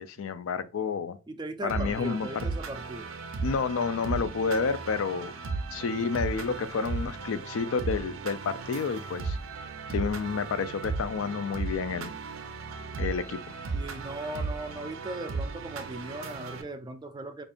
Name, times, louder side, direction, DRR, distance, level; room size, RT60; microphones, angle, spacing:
voice 1, 0.0-1.2 1.6-2.3 3.4-5.3 5.7-9.4 9.9-12.1 13.0-13.4, left 5 dB, 85° left, 0.4 m, -30 dB
voice 2, 1.3-3.1 13.7-17.4, right 2 dB, 20° right, 0.3 m, -38 dB
sound 1, 1.7-16.6, right 4 dB, 85° right, 0.6 m, -36 dB
5.2 x 2.4 x 2.4 m
head